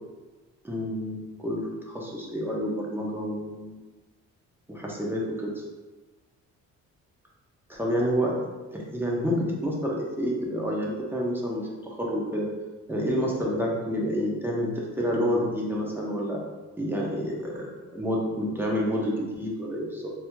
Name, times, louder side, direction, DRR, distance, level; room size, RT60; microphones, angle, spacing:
voice 1, 0.6-3.7 4.7-5.6 7.7-8.4 8.7-12.5 12.9-16.4 16.8-20.1, equal, 5° right, -3 dB, 0.8 m, -29 dB
4.1 x 2.8 x 2.3 m, 1.2 s
cardioid pair, 90°, 30 cm